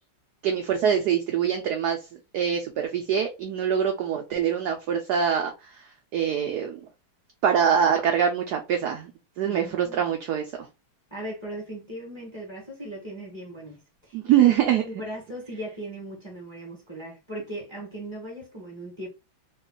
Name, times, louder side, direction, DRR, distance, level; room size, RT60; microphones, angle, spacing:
voice 1, 0.4-2.1 2.3-6.8 7.4-9.1 9.4-10.7 14.1-14.8, right 8 dB, 75° right, 0.9 m, -24 dB
voice 2, 9.4-10.1 11.1-14.5 14.8-19.1, right 1 dB, 20° left, 0.8 m, -38 dB
3.2 x 2.3 x 3.6 m
omnidirectional pair, 2.2 m